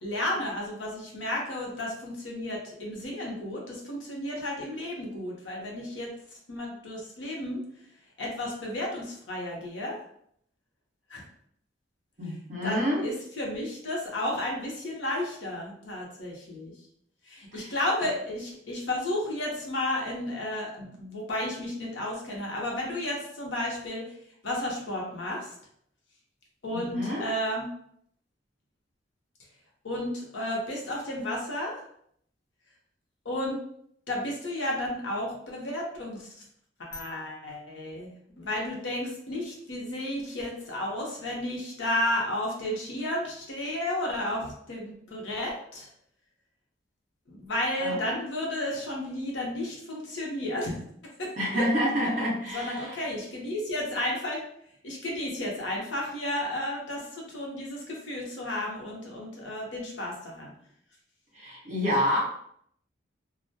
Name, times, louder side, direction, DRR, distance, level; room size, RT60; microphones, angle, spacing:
voice 1, 0.0-6.1 6.5-7.6 8.2-10.0 11.1-11.2 12.6-16.7 17.2-24.1 24.4-25.5 26.6-27.7 29.8-31.8 33.2-33.6 34.1-36.3 36.8-45.9 47.3-50.8 51.2-51.6 52.0-54.4 54.8-60.5, left 1 dB, 75° left, -2 dB, 0.7 m, -32 dB
voice 2, 12.2-13.0 17.5-17.7 26.7-27.2 47.8-48.0 51.4-52.9 61.3-62.2, equal, 40° right, -6 dB, 0.9 m, -28 dB
2.1 x 2.1 x 2.7 m, 0.67 s
head